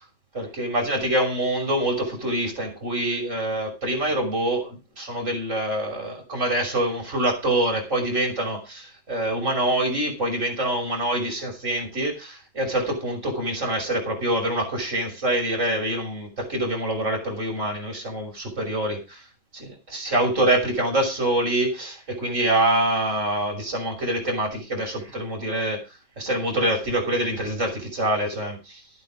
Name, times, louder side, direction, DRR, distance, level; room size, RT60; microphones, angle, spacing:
voice 1, 0.3-19.3 19.5-25.8 26.2-28.8, right 1 dB, 35° right, 6.2 m, -25 dB
13.5 x 11.0 x 5.0 m
omnidirectional pair, 2.1 m